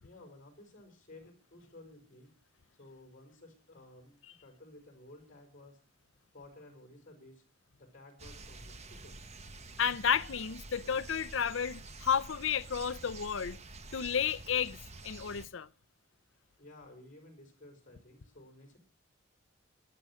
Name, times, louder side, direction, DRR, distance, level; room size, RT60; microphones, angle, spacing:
voice 1, 0.0-2.3 2.8-5.8 6.3-7.4 7.7-9.2 16.6-18.8, left 2 dB, 40° left, 5.4 m, -55 dB
sound 1, 8.2-15.5, right 3 dB, 35° right, 1.2 m, -48 dB
voice 2, 9.8-13.6 13.9-14.8 15.0-15.7, left 7 dB, 75° left, 0.7 m, -32 dB
18.0 x 11.0 x 6.3 m
head